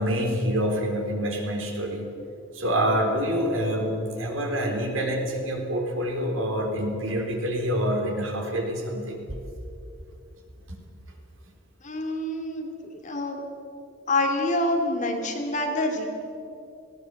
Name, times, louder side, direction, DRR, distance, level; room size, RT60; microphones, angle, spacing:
voice 1, 0.0-2.1 2.5-9.2, equal, 90° right, 2 dB, 3.8 m, -26 dB
voice 2, 11.8-13.4 14.1-16.1, left 1 dB, 40° left, 3 dB, 2.8 m, -27 dB
19.0 x 17.5 x 7.9 m, 2.7 s
head